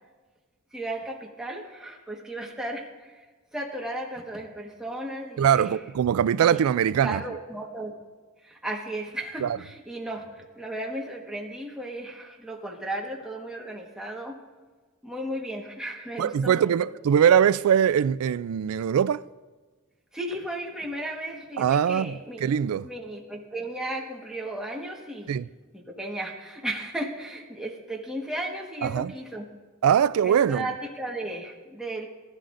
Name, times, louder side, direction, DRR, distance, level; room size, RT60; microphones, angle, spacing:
voice 1, 0.7-3.3 3.5-5.8 6.4-6.6 7.0-7.9 8.4-14.4 15.0-16.7 20.1-22.6 22.8-25.3 25.7-29.5 30.2-32.1, right 1 dB, 5° right, 1.4 m, -35 dB
voice 2, 5.4-7.2 9.4-9.6 16.2-19.2 21.6-22.9 25.3-25.5 28.8-29.1 29.8-30.7, right 8 dB, 85° right, 0.3 m, -22 dB
19.5 x 11.5 x 2.6 m
head